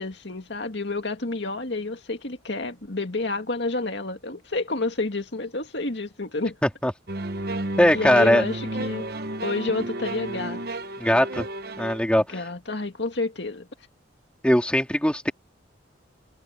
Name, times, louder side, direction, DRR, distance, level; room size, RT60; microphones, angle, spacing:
voice 1, 0.0-6.6 7.9-9.1 9.4-10.6 12.3-13.7, left 3 dB, 60° left, 2.2 m, -29 dB
voice 2, 6.6-6.9 7.8-8.4 11.0-11.5 11.8-12.2 14.4-15.3, equal, 5° left, 2.7 m, -20 dB
sound 1, 7.1-12.0, right 2 dB, 50° right, 1.1 m, -32 dB
head